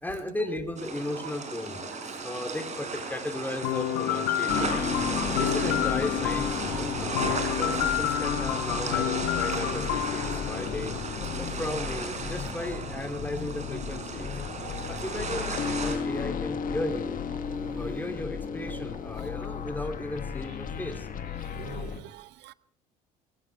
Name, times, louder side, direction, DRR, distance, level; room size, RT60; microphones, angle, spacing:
voice 1, 0.0-1.8 2.2-4.9 5.4-11.0 11.4-14.4 14.9-17.2 17.7-21.1, left 1 dB, 10° left, 2.7 m, -35 dB
sound 1, 0.8-16.0, right 4 dB, 35° right, 4.9 m, -35 dB
sound 2, 3.6-11.5, left 12 dB, 65° left, 1.3 m, -30 dB
sound 3, 4.5-22.0, left 6 dB, 40° left, 1.6 m, -34 dB
voice 2, 14.5-15.0 21.6-22.5, right 16 dB, 55° right, 0.8 m, -45 dB
23.5 x 15.5 x 3.4 m
hypercardioid pair, 60°, 21 cm